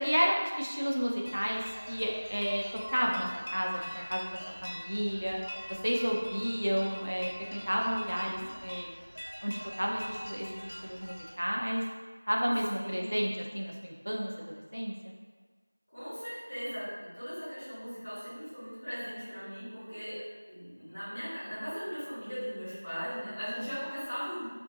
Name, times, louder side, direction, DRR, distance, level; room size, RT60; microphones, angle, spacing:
voice 1, 0.0-1.6 1.9-2.6 2.9-5.4 5.7-8.9 9.4-11.8 12.3-14.9 23.5-23.6, equal, 65° right, -1 dB, 0.4 m, -32 dB
sound 1, 1.2-11.3, equal, 70° left, 0.6 m, -44 dB
voice 2, 8.0-8.5 12.7-13.2 15.9-24.4, equal, 15° left, -16 dB, 0.8 m, -39 dB
2.5 x 2.1 x 2.6 m, 1.4 s
figure-of-eight pair, 180°, 0 cm